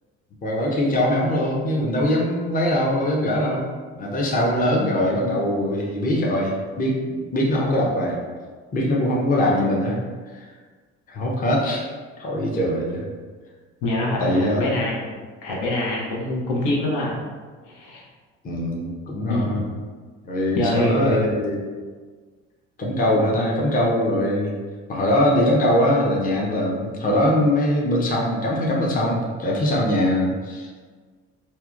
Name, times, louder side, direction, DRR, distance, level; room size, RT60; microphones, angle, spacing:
voice 1, 0.4-3.6 4.0-8.2 8.7-10.0 10.3-10.5 11.1-11.9 12.2-13.0 14.2-14.7 18.4-19.6 20.2-21.7 22.8-24.6 24.9-30.8, left 1 dB, 25° left, -3 dB, 0.6 m, -22 dB
voice 2, 13.8-15.1 15.4-17.2 17.7-18.0 19.4-19.6 20.6-21.2, left 1 dB, 70° left, -4 dB, 0.7 m, -25 dB
2.8 x 2.1 x 2.4 m, 1.5 s
hypercardioid pair, 65°, 33 cm